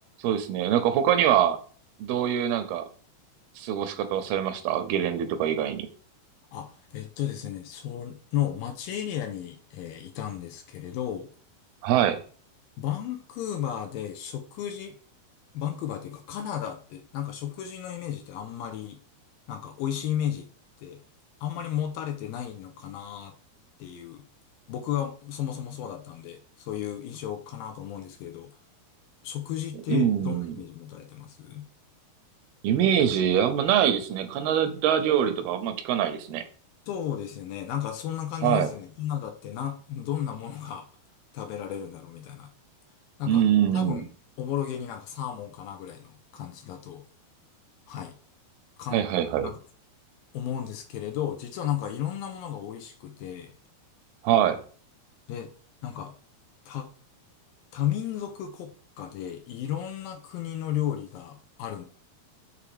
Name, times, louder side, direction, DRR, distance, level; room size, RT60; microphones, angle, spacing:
voice 1, 0.2-1.6 2.0-2.8 3.6-5.9 11.8-12.2 29.9-30.6 32.6-36.4 38.4-38.7 43.3-44.0 48.9-49.5 54.2-54.6, right 10 dB, 80° right, 8 dB, 2.6 m, -24 dB
voice 2, 6.5-11.3 12.8-15.0 15.5-19.0 19.5-20.5 20.8-21.0 21.4-23.4 23.8-24.2 24.7-28.5 29.2-31.7 36.9-40.9 41.3-42.5 43.2-43.5 43.7-44.1 44.4-47.0 47.9-48.2 48.8-49.1 49.4-49.6 50.3-53.5 55.3-55.5 55.8-56.1 56.7-56.9 57.7-58.7 59.0-61.8, left 10 dB, 80° left, 5 dB, 2.2 m, -33 dB
6.9 x 3.5 x 4.8 m, 0.42 s
omnidirectional pair, 4.5 m